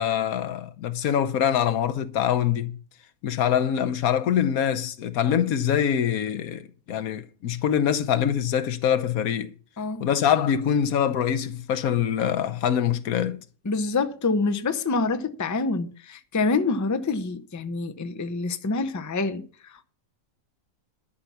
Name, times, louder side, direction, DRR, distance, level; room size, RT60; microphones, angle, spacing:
voice 1, 0.0-2.7 3.2-9.5 10.0-13.4, left 9 dB, 80° left, 1.3 m, -24 dB
voice 2, 9.8-10.1 13.6-19.8, left 3 dB, 20° left, 0.5 m, -26 dB
11.5 x 5.7 x 7.2 m
omnidirectional pair, 1.5 m